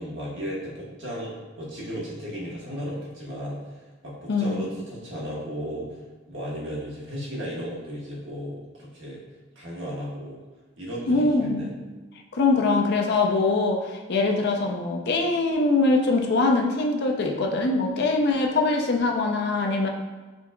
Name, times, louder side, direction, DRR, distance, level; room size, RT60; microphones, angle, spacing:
voice 1, 0.0-3.6 4.0-5.9 6.3-9.2 9.5-10.4 10.8-11.7, equal, 65° right, -5 dB, 1.3 m, -35 dB
voice 2, 4.3-4.6 11.1-11.7 12.3-19.9, left 3 dB, 55° left, 2 dB, 0.5 m, -23 dB
5.3 x 3.4 x 2.2 m, 1.3 s
head